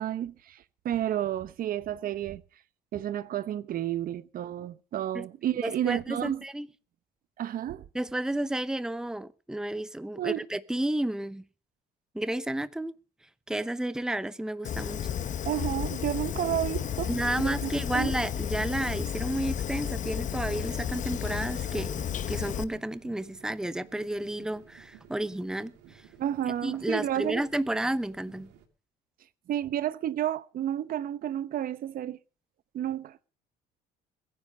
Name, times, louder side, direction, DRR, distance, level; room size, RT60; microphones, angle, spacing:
voice 1, 0.0-2.4 2.9-6.4 7.4-7.8 10.2-10.4 15.4-17.1 17.4-18.1 26.2-27.4 29.5-32.2 32.7-33.2, right 11 dB, 60° right, 0.9 m, -31 dB
voice 2, 5.6-6.7 7.9-11.4 12.1-12.9 13.5-15.1 17.1-26.0 26.6-28.5, right 1 dB, 5° right, 0.8 m, -32 dB
Fire, 14.6-22.6, left 9 dB, 50° left, 1.1 m, -32 dB
sound 1, 21.7-28.7, right 8 dB, 90° right, 2.8 m, -54 dB
22.0 x 9.9 x 5.3 m
cardioid pair, 110°, 17 cm